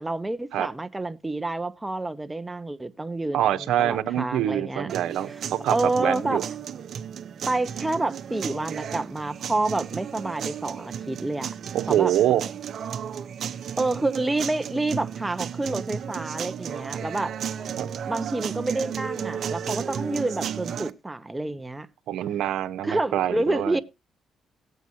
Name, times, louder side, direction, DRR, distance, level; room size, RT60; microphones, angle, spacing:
voice 1, 0.0-4.9 5.3-5.4 5.7-6.4 7.5-11.5 11.9-12.1 13.8-17.3 18.1-21.9 22.8-23.8, right 2 dB, 15° right, 0.9 m, -28 dB
voice 2, 3.3-5.3 5.6-6.4 11.7-12.4 17.8-17.9 22.1-23.8, right 12 dB, 85° right, 1.0 m, -25 dB
sound 1, 4.9-20.9, right 8 dB, 60° right, 0.9 m, -34 dB
18.5 x 8.0 x 2.8 m
cardioid pair, 90°, 0 cm